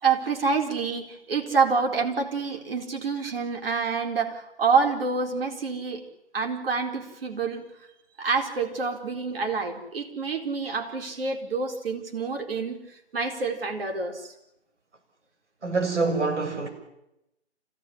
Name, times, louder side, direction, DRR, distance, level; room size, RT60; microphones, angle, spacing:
voice 1, 0.0-6.0 6.3-7.6 8.2-12.8 13.1-14.3, right 5 dB, 55° right, 4.2 m, -27 dB
voice 2, 15.6-16.7, right 3 dB, 80° right, 7.0 m, -25 dB
26.5 x 16.5 x 10.0 m
hypercardioid pair, 160°, 35 cm